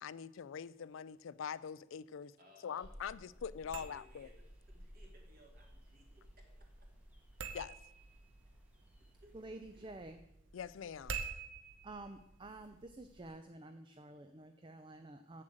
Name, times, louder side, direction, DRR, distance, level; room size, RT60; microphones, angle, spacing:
voice 1, 0.0-2.3 2.6-4.3 7.5-7.8 10.5-11.2, left 7 dB, 70° left, 0.3 m, -44 dB
voice 2, 2.4-3.3 3.6-6.5 9.2-9.9, equal, 45° right, 2.5 m, -65 dB
sound 1, 2.8-10.1, equal, 5° right, 1.1 m, -59 dB
sound 2, 3.5-13.3, right 5 dB, 60° right, 0.9 m, -50 dB
voice 3, 9.3-10.2 11.8-15.4, right 2 dB, 25° right, 0.4 m, -50 dB
7.7 x 7.4 x 7.7 m
head